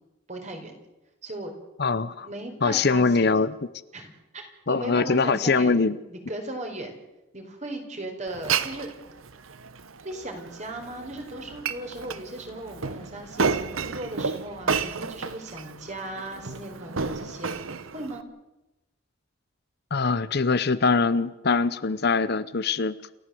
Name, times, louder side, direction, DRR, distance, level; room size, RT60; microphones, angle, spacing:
voice 1, 0.3-0.8 1.2-1.5 2.2-3.3 3.9-5.8 6.1-6.9 7.3-8.9 10.0-17.6 17.9-18.2, right 1 dB, 35° right, 4 dB, 4.5 m, -37 dB
voice 2, 1.8-2.3 2.6-3.5 4.7-6.0 19.9-23.0, left 4 dB, 50° left, 15 dB, 0.7 m, -23 dB
Glass, 8.3-18.2, right 5 dB, 85° right, 1.1 m, -32 dB
28.5 x 14.5 x 7.7 m, 0.99 s
head